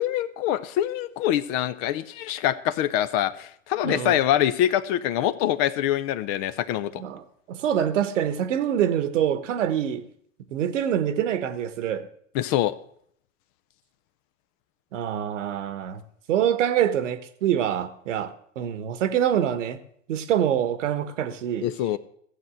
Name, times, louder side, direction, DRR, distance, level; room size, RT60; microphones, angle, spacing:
voice 1, 0.0-7.0 12.3-12.7 21.6-22.0, left 12 dB, 45° left, 0.7 m, -24 dB
voice 2, 3.8-4.2 7.0-7.2 7.5-10.0 10.5-12.1 14.9-16.0 16.3-19.8 20.1-21.7, right 10 dB, 65° right, 1.3 m, -25 dB
15.0 x 7.8 x 6.3 m
hypercardioid pair, 100°, 39 cm